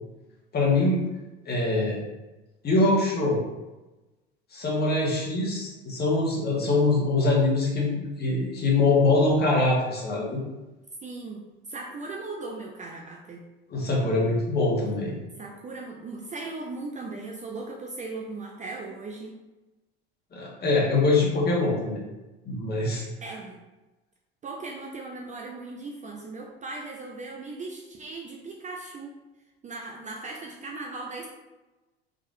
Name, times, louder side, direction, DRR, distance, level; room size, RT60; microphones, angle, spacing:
voice 1, 0.5-1.0 1.4-2.0 2.6-3.4 4.5-10.4 13.7-15.1 20.3-22.0 22.4-23.0, left 2 dB, 30° left, -3 dB, 1.4 m, -23 dB
voice 2, 11.0-11.4 11.7-13.4 15.4-19.4 22.9-23.6 24.4-29.1 29.6-31.3, right 3 dB, 25° right, 0 dB, 0.5 m, -38 dB
3.7 x 3.5 x 2.6 m, 1.1 s
hypercardioid pair, 75°, 31 cm